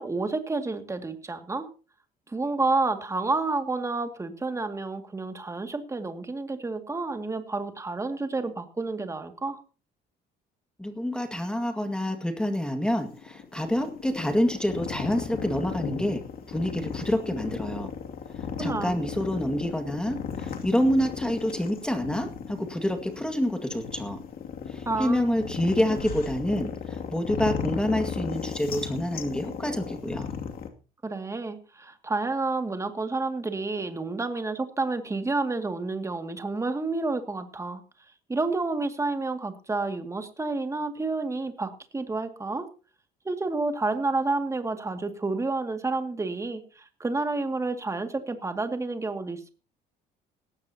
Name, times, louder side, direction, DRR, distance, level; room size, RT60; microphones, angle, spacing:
voice 1, 0.0-1.7 2.3-9.6 18.6-19.0 24.9-25.4 31.0-37.8 38.3-42.7 43.2-49.5, right 3 dB, 15° right, 7 dB, 2.2 m, -30 dB
voice 2, 10.8-16.2 16.5-17.9 18.4-24.2 24.7-30.3, equal, 5° left, 7 dB, 1.9 m, -27 dB
sound 1, 13.0-30.7, left 7 dB, 60° left, 2.5 m, -35 dB
18.0 x 15.0 x 2.9 m, 0.35 s
cardioid pair, 110°, 17 cm